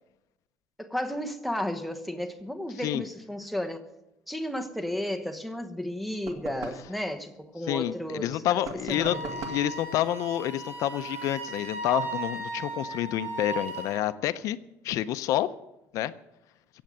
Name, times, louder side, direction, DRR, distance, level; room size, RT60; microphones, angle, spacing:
voice 1, 0.8-3.8 4.3-9.4, left 1 dB, ahead, 1.1 m, -33 dB
sound 1, 6.2-6.9 8.6-9.7, right 5 dB, 70° right, 2.4 m, -40 dB
voice 2, 7.7-14.6 14.8-15.5 15.9-16.1, left 13 dB, 65° left, 0.5 m, -28 dB
Wind instrument woodwind instrument, 8.9-14.0, right 3 dB, 40° right, 4.7 m, -36 dB
16.0 x 7.7 x 9.1 m
cardioid pair, 155°, 6 cm